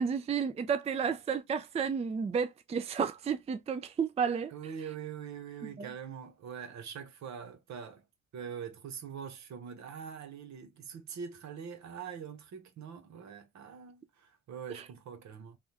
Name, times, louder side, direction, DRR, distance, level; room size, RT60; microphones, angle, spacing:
voice 1, 0.0-4.5, right 6 dB, 20° right, 0.4 m, -31 dB
voice 2, 4.5-8.0 8.3-15.6, right 7 dB, 65° right, 1.0 m, -43 dB
3.4 x 2.3 x 2.8 m
cardioid pair, 90°, 30 cm